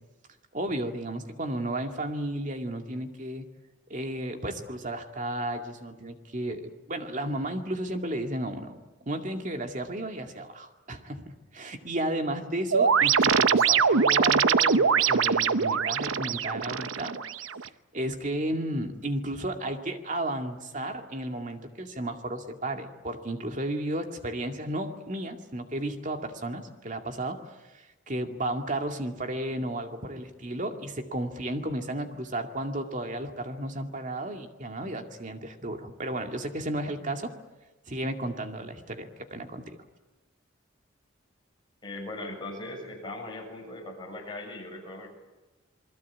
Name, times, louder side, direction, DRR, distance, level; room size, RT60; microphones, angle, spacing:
voice 1, 0.5-3.5 3.9-17.2 17.9-27.5 28.1-37.3 37.9-39.8, right 1 dB, 40° right, 5 dB, 2.2 m, -33 dB
sound 1, 12.7-17.7, right 6 dB, 85° right, 0.8 m, -23 dB
voice 2, 41.8-45.1, left 2 dB, 25° left, 0 dB, 7.2 m, -39 dB
28.0 x 21.0 x 8.6 m, 1.1 s
head